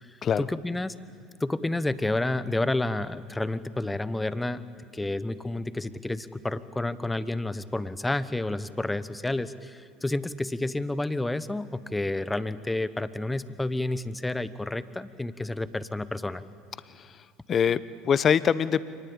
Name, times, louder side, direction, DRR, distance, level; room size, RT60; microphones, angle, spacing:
voice 1, 0.1-0.9 1.4-4.6 4.9-16.4, left 2 dB, 10° left, 15 dB, 1.1 m, -30 dB
voice 2, 17.5-18.8, left 7 dB, 40° left, 17 dB, 0.9 m, -24 dB
27.0 x 19.0 x 8.8 m, 2.2 s
figure-of-eight pair, 65°, 0 cm